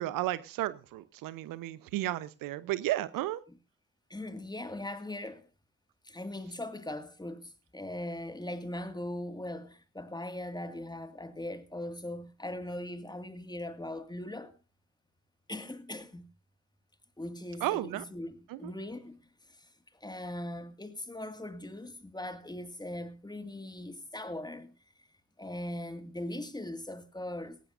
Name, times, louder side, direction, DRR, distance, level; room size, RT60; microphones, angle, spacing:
voice 1, 0.0-3.4 17.6-18.0 18.5-18.7, right 15 dB, 65° right, 0.9 m, -33 dB
voice 2, 4.1-5.5 6.0-14.5 15.5-16.3 17.2-19.2 19.5-25.1 25.4-27.6, left 1 dB, 10° left, 2.1 m, -40 dB
18.0 x 17.5 x 2.6 m
hypercardioid pair, 40°, 36 cm